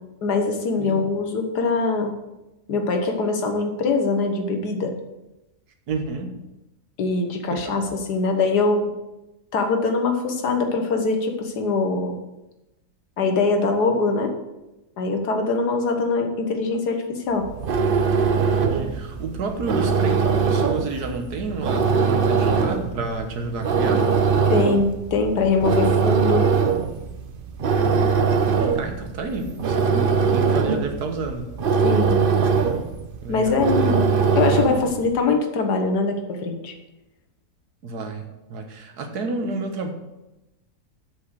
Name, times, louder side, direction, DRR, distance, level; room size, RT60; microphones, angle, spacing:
voice 1, 0.2-2.1 2.7-4.9 7.0-8.9 9.5-12.2 13.2-14.3 15.0-17.5 24.5-26.5 31.8-32.2 33.3-36.7, left 3 dB, 85° left, 5 dB, 1.8 m, -23 dB
voice 2, 5.9-6.4 7.6-7.8 18.3-24.1 27.8-28.1 28.6-31.5 33.2-33.7 37.8-39.9, right 3 dB, 80° right, 5 dB, 1.7 m, -30 dB
sound 1, 17.4-35.0, right 5 dB, 50° right, 0.7 m, -22 dB
7.7 x 6.2 x 6.4 m, 0.98 s
omnidirectional pair, 1.7 m